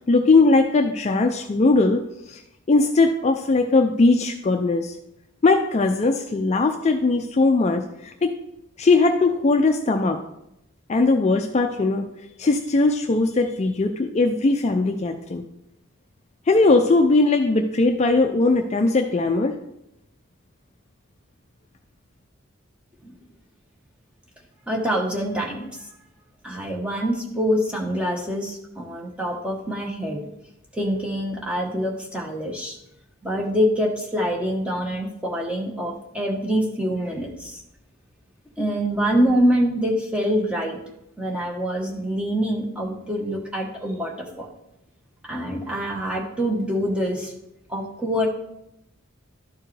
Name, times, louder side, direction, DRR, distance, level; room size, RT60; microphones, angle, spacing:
voice 1, 0.1-2.4 2.7-4.9 5.4-8.3 8.8-10.2 10.9-12.1 12.4-15.4 16.5-19.5, left 3 dB, 30° left, 5 dB, 0.4 m, -19 dB
voice 2, 24.7-25.9 26.4-30.2 30.7-32.8 33.2-37.6 38.6-40.8 41.2-44.5 45.2-47.4 47.7-48.3, equal, 5° right, -1 dB, 1.0 m, -25 dB
12.0 x 4.5 x 3.2 m, 0.84 s
head